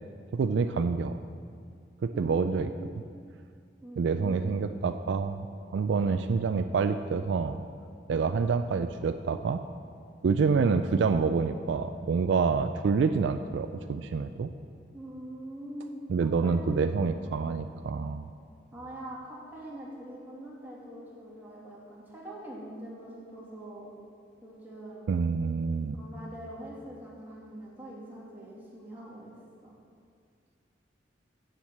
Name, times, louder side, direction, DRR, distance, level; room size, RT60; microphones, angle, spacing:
voice 1, 0.3-1.1 2.0-2.7 4.0-5.5 5.7-7.6 8.1-9.6 10.2-14.5 16.1-18.3 25.1-26.0, right 5 dB, 70° right, 9 dB, 0.3 m, -27 dB
voice 2, 2.1-2.8 3.8-4.5 8.1-8.3 14.9-16.0 16.4-17.0 18.7-23.9 24.4-25.1 25.9-29.3 29.6-29.7, right 1 dB, 10° right, -6 dB, 2.3 m, -43 dB
8.1 x 7.2 x 7.2 m, 2.2 s
head